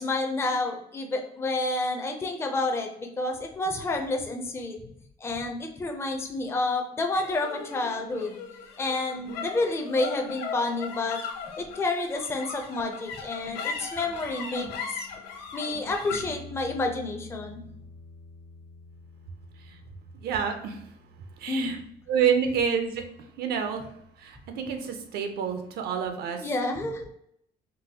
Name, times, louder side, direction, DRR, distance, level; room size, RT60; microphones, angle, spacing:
voice 1, 0.0-4.8 5.2-8.4 8.8-11.2 11.6-15.1 15.5-17.6 21.5-21.7 26.4-27.1, left 2 dB, 15° left, 3 dB, 0.4 m, -29 dB
sound 1, 7.1-23.7, left 5 dB, 85° left, 0.7 m, -40 dB
voice 2, 20.2-20.8 21.4-21.8 22.1-23.0 23.4-23.9 24.2-26.5, right 7 dB, 70° right, 5 dB, 0.5 m, -28 dB
3.8 x 2.1 x 2.7 m, 0.72 s
cardioid pair, 110°, 17 cm